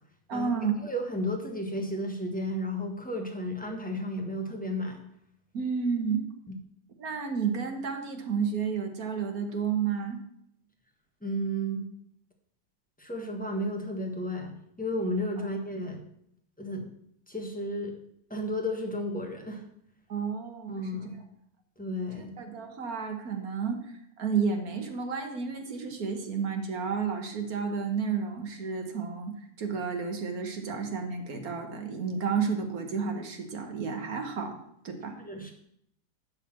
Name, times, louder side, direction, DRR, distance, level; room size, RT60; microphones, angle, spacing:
voice 1, 0.3-0.7 5.5-6.3 7.0-10.2 15.4-15.5 20.1-20.9 22.1-34.6 34.8-35.2, right 6 dB, 65° right, 5 dB, 1.7 m, -31 dB
voice 2, 0.8-5.0 11.2-11.8 13.0-16.0 16.6-16.9 17.3-17.9 18.3-19.6 20.7-21.2 21.8-22.3 35.2-35.5, equal, 5° left, 2 dB, 1.3 m, -33 dB
11.5 x 4.2 x 7.5 m, 0.72 s
omnidirectional pair, 1.7 m